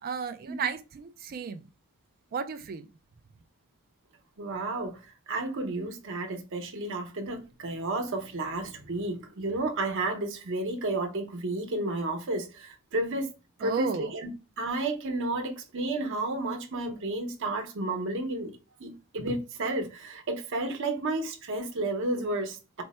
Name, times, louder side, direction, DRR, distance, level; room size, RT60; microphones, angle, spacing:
voice 1, 0.0-1.7 2.3-2.9 13.6-14.1, right 6 dB, 40° right, 0.3 m, -33 dB
voice 2, 4.4-5.0 5.3-13.3 13.6-14.3 14.6-22.8, right 2 dB, 60° right, 0.8 m, -32 dB
4.4 x 2.1 x 4.1 m
head